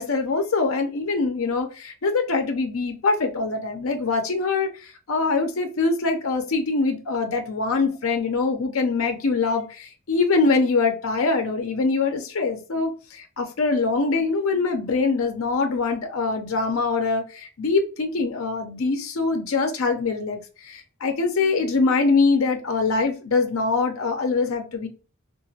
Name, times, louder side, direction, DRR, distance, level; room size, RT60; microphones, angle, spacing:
voice 1, 0.0-24.9, left 4 dB, 70° left, 4 dB, 0.5 m, -23 dB
2.8 x 2.5 x 2.7 m, 0.34 s
head